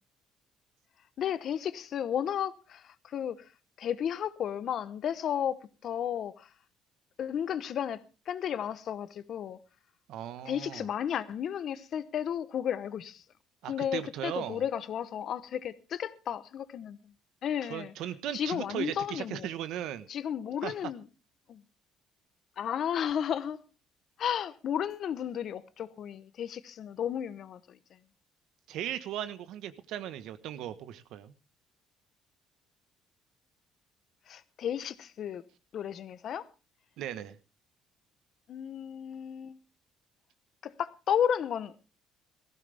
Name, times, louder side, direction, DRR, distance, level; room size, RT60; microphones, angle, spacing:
voice 1, 1.2-3.5 3.8-5.6 5.8-6.5 7.2-9.6 10.4-13.2 13.7-17.1 17.4-17.9 18.3-19.5 20.1-21.0 21.5-21.6 22.6-23.6 24.2-28.0 34.3-35.4 35.7-36.5 38.5-39.6 40.6-41.8, left 9 dB, 50° left, 1.0 m, -33 dB
voice 2, 10.1-10.9 13.6-14.6 17.7-20.1 20.6-20.7 28.7-31.3 37.0-37.4, right 11 dB, 75° right, 1.3 m, -37 dB
18.0 x 15.0 x 3.5 m
cardioid pair, 130°, 0 cm